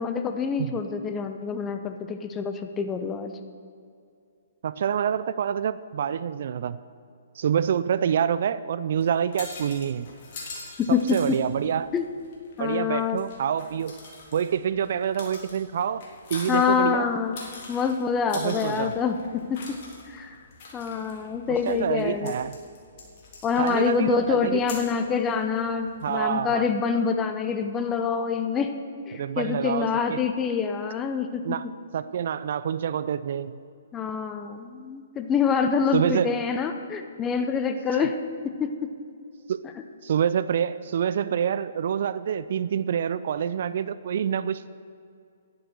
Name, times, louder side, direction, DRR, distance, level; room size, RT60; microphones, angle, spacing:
voice 1, 0.0-3.3 10.8-11.4 11.9-12.0 12.6-13.2 16.5-17.4 17.7-19.8 20.1-20.4 20.7-22.3 23.4-28.7 29.1-31.6 33.9-38.2 38.4-38.9, left 6 dB, 20° left, 7 dB, 0.8 m, -26 dB
voice 2, 4.6-6.8 7.4-10.1 10.9-11.9 12.6-14.0 14.3-16.0 16.3-17.1 18.3-18.9 21.5-22.6 23.6-24.7 26.0-26.7 29.1-30.2 31.4-31.6 31.9-33.6 35.9-36.4 37.9-38.1 39.5-39.6 40.0-44.7, right 8 dB, 55° right, 15 dB, 0.4 m, -27 dB
sound 1, 9.0-26.2, left 3 dB, 45° left, 3.6 m, -44 dB
10.5 x 10.5 x 6.9 m, 2.3 s
figure-of-eight pair, 130°, 0 cm